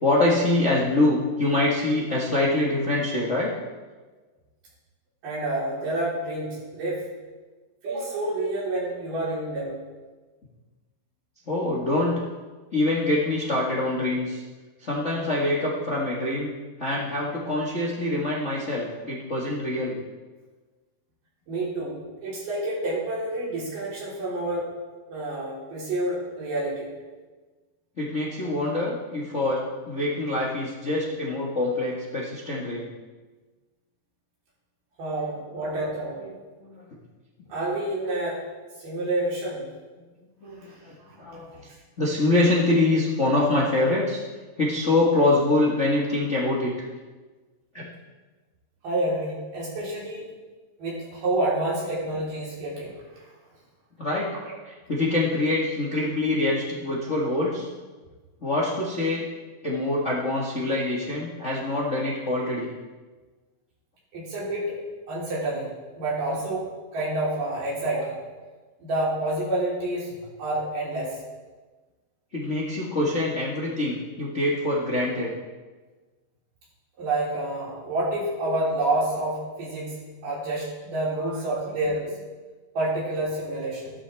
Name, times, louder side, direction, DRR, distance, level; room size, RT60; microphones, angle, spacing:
voice 1, 0.0-3.5 11.5-12.2 12.7-14.4 14.8-16.5 16.8-20.0 28.0-29.6 29.9-32.9 36.6-36.8 40.4-41.5 42.0-44.2 44.6-46.7 47.7-47.9 54.0-54.3 54.9-57.7 58.4-59.3 59.6-62.7 72.3-75.3 81.2-81.3, left 2 dB, 45° left, -5 dB, 0.8 m, -25 dB
voice 2, 5.2-7.0 7.8-9.7 21.5-22.0 22.2-24.7 25.1-26.9 35.0-36.2 37.5-38.4 38.8-39.7 40.6-40.8 41.0-41.2 41.5-41.8 48.8-50.2 50.8-53.0 54.5-54.6 64.1-64.7 65.1-65.7 66.0-66.7 66.9-68.3 68.8-70.1 70.4-71.2 77.0-82.0 82.8-83.9, right 2 dB, 70° right, -7 dB, 5.4 m, -28 dB
14.5 x 12.0 x 3.5 m, 1.3 s
omnidirectional pair, 3.9 m